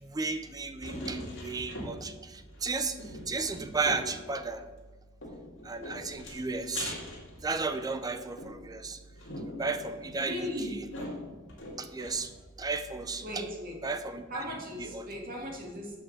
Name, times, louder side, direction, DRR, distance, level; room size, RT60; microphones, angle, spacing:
voice 1, 0.0-2.1 2.6-3.0 3.3-4.7 5.6-6.9 7.4-9.0 9.6-11.1 11.8-12.3 12.6-13.4 13.8-15.1, right 4 dB, 20° right, 9 dB, 0.5 m, -34 dB
sound 1, 0.8-2.3 2.5-2.6 3.0-4.2 5.2-7.9 8.4-12.4 12.8-12.9 13.1-13.2, left 1 dB, 65° left, 2.2 m, -42 dB
voice 2, 10.2-10.7 13.2-13.8 14.3-15.9, left 1 dB, 45° right, 0 dB, 1.9 m, -37 dB
7.6 x 5.5 x 6.6 m, 1.3 s
head